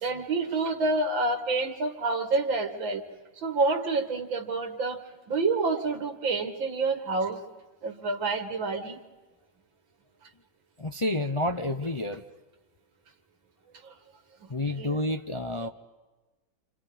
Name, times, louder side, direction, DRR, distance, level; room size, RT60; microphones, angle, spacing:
voice 1, 0.0-3.0 3.4-5.0 5.3-7.4 7.8-9.0 14.8-15.0, right 3 dB, 90° right, 4 dB, 2.6 m, -28 dB
voice 2, 10.8-12.2 14.5-15.7, left 1 dB, 40° left, 6 dB, 0.4 m, -29 dB
29.0 x 27.0 x 5.1 m, 1.2 s
omnidirectional pair, 2.0 m